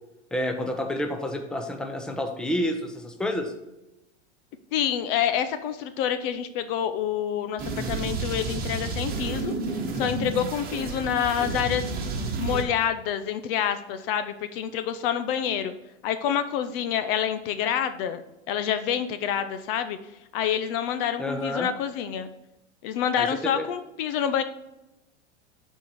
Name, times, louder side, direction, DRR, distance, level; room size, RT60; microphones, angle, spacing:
voice 1, 0.3-3.5 21.2-21.7 23.2-23.7, left 1 dB, ahead, 4 dB, 0.8 m, -29 dB
voice 2, 4.7-9.5 9.9-11.9 12.4-15.7 16.0-18.2 18.5-20.0 20.3-22.3 22.8-24.4, left 9 dB, 50° left, 11 dB, 0.8 m, -27 dB
sound 1, 7.6-12.6, right 3 dB, 25° right, 1.6 m, -31 dB
9.3 x 4.5 x 4.7 m, 0.95 s
hypercardioid pair, 125°, 35 cm